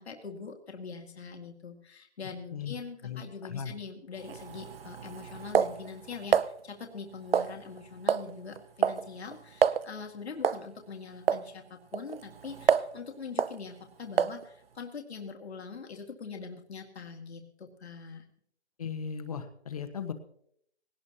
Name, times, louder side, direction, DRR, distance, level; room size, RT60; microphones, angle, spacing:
voice 1, 0.0-18.3, left 5 dB, 70° left, 3 dB, 2.3 m, -43 dB
voice 2, 3.0-3.7 18.8-20.1, left 7 dB, 35° left, 9 dB, 1.3 m, -37 dB
sound 1, 4.2-6.5 7.3-7.8 8.1-8.3 8.6-9.0 9.3-9.4 9.6-9.8 10.4-10.7 11.3-11.4 11.9-13.0 13.4-13.6 14.2-14.4, right 7 dB, 60° right, 0.7 m, -27 dB
19.5 x 18.0 x 2.9 m, 0.68 s
hypercardioid pair, 175°, 34 cm